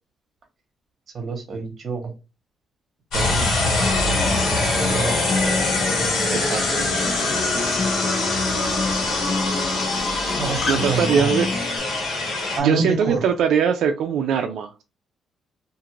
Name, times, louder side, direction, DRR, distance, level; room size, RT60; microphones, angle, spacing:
voice 1, 1.1-2.1 3.1-3.9 4.2-5.2 10.4-11.3 12.6-13.2, right 3 dB, 40° right, 0.9 m, -27 dB
sound 1, 3.1-12.6, left 2 dB, 80° left, 1.3 m, -23 dB
Acoustic guitar, 3.8-11.8, left 3 dB, 40° left, 0.5 m, -30 dB
voice 2, 6.3-6.9 10.7-11.5 12.2-12.3 12.6-14.8, right 7 dB, 80° right, 0.3 m, -22 dB
2.5 x 2.5 x 2.9 m
cardioid pair, 150°, 0 cm